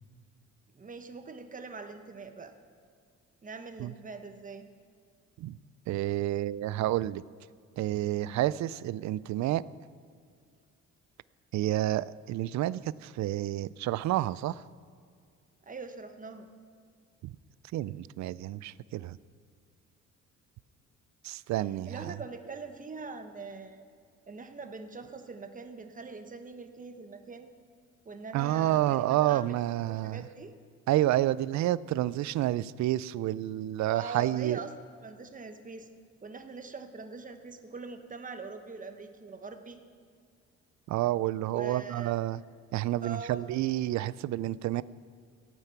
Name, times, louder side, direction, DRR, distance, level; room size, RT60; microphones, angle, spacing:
voice 1, 0.7-2.5 3.4-4.7 15.6-16.5 21.8-23.8 24.3-27.5 28.0-29.6 29.8-30.5 33.9-34.7 35.0-35.9 36.2-39.8 41.5-42.1 43.0-43.5, right 4 dB, 25° right, 7 dB, 1.2 m, -42 dB
voice 2, 5.9-7.2 7.8-9.6 11.5-14.6 17.2-17.3 17.7-19.2 21.2-22.0 28.3-30.2 30.9-34.6 40.9-42.4 42.7-44.8, right 14 dB, 65° right, 19 dB, 0.4 m, -29 dB
15.0 x 9.2 x 5.8 m, 2.2 s
cardioid pair, 90°, 30 cm